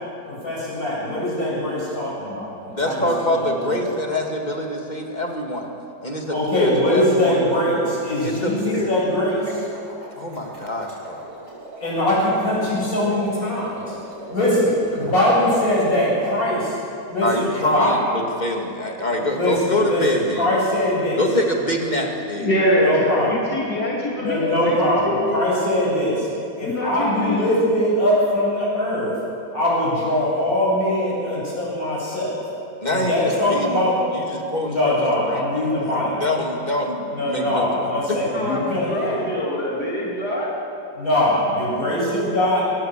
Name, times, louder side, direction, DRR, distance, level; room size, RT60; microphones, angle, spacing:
voice 1, 0.3-3.8 6.3-9.6 11.8-13.8 14.3-14.7 15.0-16.8 17.1-18.0 19.1-21.2 22.8-23.3 24.2-26.3 26.6-29.2 29.5-32.4 32.8-34.1 34.5-36.3 37.1-39.2 41.0-42.6, left 1 dB, 60° left, -6 dB, 8.5 m, -22 dB
voice 2, 2.7-5.7 6.0-7.4 8.2-8.9 10.1-11.3 17.2-20.5 21.2-22.5 32.8-33.8 34.1-34.9 35.3-38.2, left 1 dB, 25° left, 1 dB, 2.5 m, -25 dB
sound 1, 7.4-15.8, right 1 dB, 80° right, 7.2 m, -40 dB
voice 3, 22.4-24.8 25.0-25.4 26.6-27.4 38.3-40.5, left 1 dB, 80° left, -4 dB, 3.3 m, -23 dB
22.5 x 19.0 x 7.6 m, 2.7 s
omnidirectional pair, 1.7 m